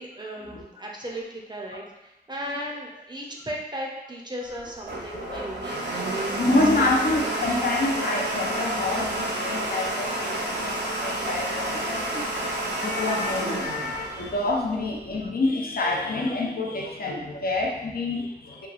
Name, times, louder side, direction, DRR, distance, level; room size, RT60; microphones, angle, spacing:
voice 1, 0.0-6.9, equal, 25° right, -1 dB, 0.4 m, -36 dB
Domestic sounds home sounds, 4.5-15.2, right 1 dB, 85° right, 0.4 m, -30 dB
voice 2, 6.4-18.7, left 2 dB, 60° left, -1 dB, 0.5 m, -27 dB
2.9 x 2.2 x 2.4 m, 0.94 s
wide cardioid pair, 85°, 17 cm